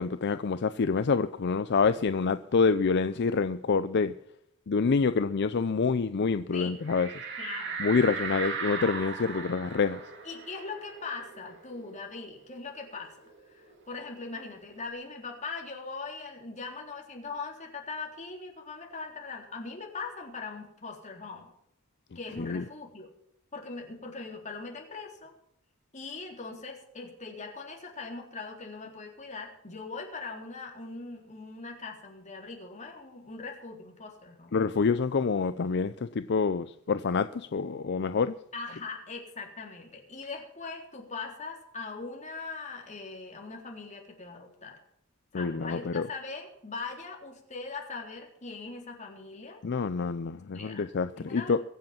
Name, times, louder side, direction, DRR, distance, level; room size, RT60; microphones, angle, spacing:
voice 1, 0.0-4.1 4.7-7.1 7.8-10.0 22.4-22.6 34.5-38.3 45.3-46.1 49.6-51.6, left 5 dB, 55° left, 0.5 m, -27 dB
voice 2, 6.5-6.8 7.4-7.8 10.2-13.2 13.5-21.5 22.2-23.1 23.5-25.3 25.9-34.6 38.5-44.8 45.3-49.6 50.3-50.8 51.2-51.6, left 4 dB, 35° left, 3.7 m, -41 dB
sound 1, 6.9-12.1 12.4-12.5 12.8-14.5, right 5 dB, 55° right, 2.6 m, -38 dB
22.5 x 7.8 x 5.8 m
head